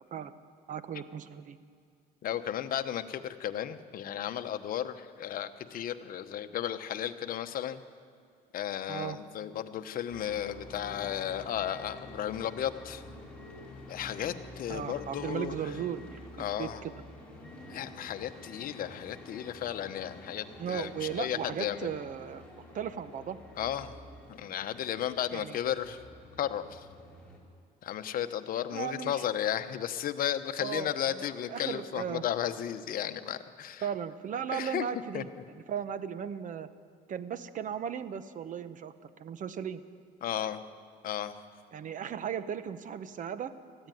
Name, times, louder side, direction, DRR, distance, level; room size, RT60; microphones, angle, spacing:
voice 1, 0.7-1.6 8.9-9.2 14.7-16.9 20.6-22.4 22.7-23.4 25.3-25.6 28.7-29.2 30.6-32.2 33.8-35.3 35.7-36.7 37.1-39.8 41.7-43.5, right 8 dB, 50° right, 13 dB, 1.0 m, -36 dB
voice 2, 2.2-7.8 8.5-13.0 13.9-15.5 16.4-16.8 17.7-21.9 23.6-23.9 24.4-26.0 26.4-26.8 27.8-33.8 34.5-34.9 35.1-35.2 40.2-40.6 41.0-41.3, left 10 dB, 60° left, 8 dB, 1.0 m, -34 dB
sound 1, 10.1-27.4, left 1 dB, 5° left, 4.8 m, -49 dB
20.0 x 14.5 x 9.2 m, 2.3 s
cardioid pair, 110°, 17 cm